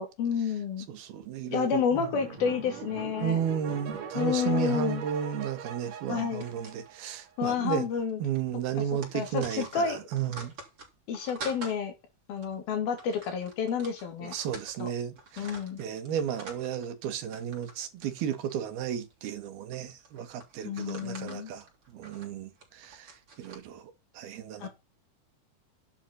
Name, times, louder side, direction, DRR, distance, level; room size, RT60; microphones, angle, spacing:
voice 1, 0.0-0.9 1.4-3.4 4.1-5.0 6.1-6.4 7.4-8.2 9.1-10.0 11.1-11.9 12.3-14.3 14.8-14.9 15.4-15.8 20.6-21.5 24.6-24.7, left 7 dB, 70° left, 4.7 m, -30 dB
voice 2, 0.9-2.1 3.2-7.9 8.2-10.5 14.2-24.7, right 9 dB, 75° right, 3.5 m, -33 dB
sound 1, 1.9-7.4, right 7 dB, 55° right, 4.6 m, -41 dB
sound 2, 6.4-7.2 7.5-7.6 7.9-8.1 8.4-11.8 12.4-12.5 13.0-14.9 15.2-16.9 17.2-17.8 18.0-19.1 19.7-23.6, right 3 dB, 35° right, 4.5 m, -46 dB
11.0 x 9.0 x 4.3 m
omnidirectional pair, 4.5 m